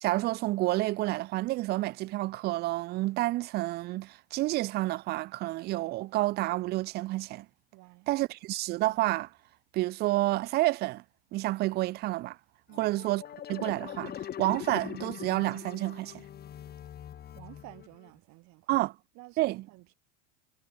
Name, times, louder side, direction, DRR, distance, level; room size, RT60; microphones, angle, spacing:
voice 1, 0.0-7.5 8.1-9.3 9.7-11.0 11.3-12.4 12.8-13.2 13.5-16.2 18.7-18.9 19.4-19.6, right 18 dB, 30° right, 0.4 m, -29 dB
voice 2, 7.7-8.1 12.7-13.0 17.3-18.9 19.1-19.9, right 23 dB, 50° right, 3.7 m, -52 dB
sound 1, 12.7-18.1, left 10 dB, 25° left, 1.7 m, -42 dB
supercardioid pair, 140°, 37 cm